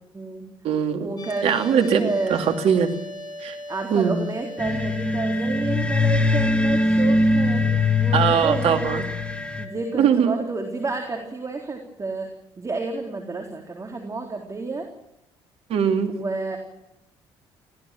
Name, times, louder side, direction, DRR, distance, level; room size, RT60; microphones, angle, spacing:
voice 1, 0.1-0.5 1.0-2.5 3.7-7.7 8.0-9.0 9.6-12.3 12.6-14.9 16.1-16.6, right 3 dB, 30° right, 3 dB, 3.9 m, -30 dB
voice 2, 0.6-1.1 1.4-2.9 3.4-3.6 3.9-4.2 8.1-9.0 9.9-10.4 15.7-16.2, right 7 dB, 65° right, 5 dB, 2.8 m, -21 dB
sound 1, 1.2-11.2, left 1 dB, 35° left, 4.6 m, -40 dB
sound 2, 4.6-9.6, left 2 dB, 10° left, 2.7 m, -22 dB
22.0 x 16.5 x 9.2 m, 0.86 s
hypercardioid pair, 55°, 11 cm